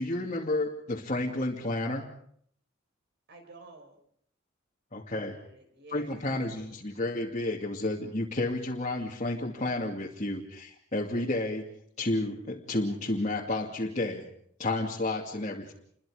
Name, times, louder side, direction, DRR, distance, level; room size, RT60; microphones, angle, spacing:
voice 1, 0.0-2.1 4.9-5.4 5.9-14.3 14.6-15.7, left 2 dB, 35° left, -2 dB, 2.5 m, -31 dB
voice 2, 3.3-3.9 5.1-6.7, right 3 dB, 60° right, 4 dB, 5.6 m, -52 dB
29.5 x 23.0 x 5.1 m, 0.65 s
head